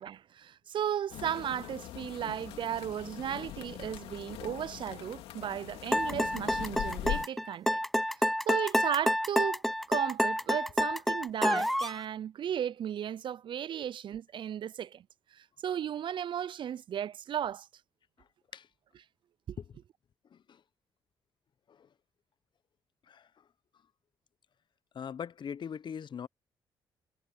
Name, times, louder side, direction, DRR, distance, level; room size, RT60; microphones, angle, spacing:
voice 1, 0.0-7.8 8.5-9.6 9.9-15.0 15.3-17.7 19.5-19.6, right 9 dB, 60° right, 0.4 m, -35 dB
sound 1, 1.1-7.3, left 13 dB, 80° left, 2.3 m, -41 dB
sound 2, 5.9-12.0, equal, ahead, 1.0 m, -28 dB
voice 2, 18.2-18.7 19.6-19.7 20.3-20.6 21.7-21.9 23.1-23.4 24.9-26.3, left 7 dB, 55° left, 0.9 m, -42 dB
supercardioid pair, 50°, 10 cm